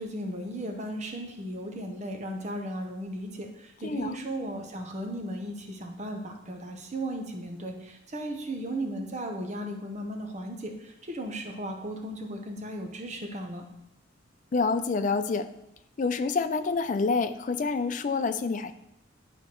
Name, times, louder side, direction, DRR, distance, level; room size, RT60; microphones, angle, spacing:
voice 1, 0.0-13.6, right 1 dB, 35° right, 3 dB, 0.8 m, -36 dB
voice 2, 3.8-4.2 14.5-15.5 16.0-18.7, left 4 dB, 40° left, 10 dB, 0.4 m, -27 dB
10.5 x 4.4 x 3.0 m, 0.86 s
head